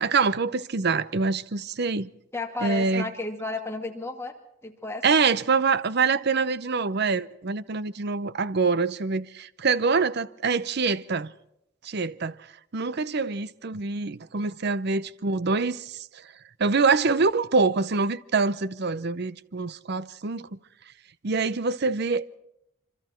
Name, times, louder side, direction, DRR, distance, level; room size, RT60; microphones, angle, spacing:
voice 1, 0.0-2.1 2.6-3.1 5.0-11.3 11.8-12.4 12.7-16.0 16.6-20.6 21.2-22.4, right 4 dB, 60° right, 0.7 m, -25 dB
voice 2, 2.3-4.3 4.6-5.0, left 3 dB, 15° left, 2.4 m, -33 dB
26.5 x 25.5 x 4.5 m
head